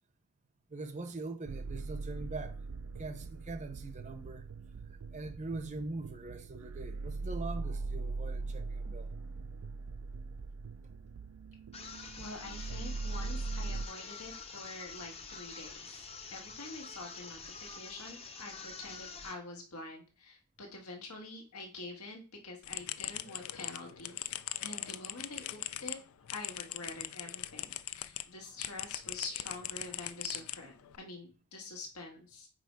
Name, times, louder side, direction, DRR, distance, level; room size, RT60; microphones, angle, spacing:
voice 1, 0.7-2.6 3.0-4.5 5.1-9.1, right 3 dB, 35° right, 0.7 m, -42 dB
sound 1, 1.5-13.9, right 3 dB, 75° right, 0.4 m, -40 dB
sound 2, 11.7-19.5, left 5 dB, 25° left, 0.7 m, -47 dB
voice 2, 12.2-24.3 24.6-26.0 26.3-32.5, left 2 dB, 85° left, 1.7 m, -46 dB
sound 3, 22.6-28.2 28.6-31.0, left 14 dB, 70° left, 0.4 m, -41 dB
5.3 x 4.3 x 4.6 m
head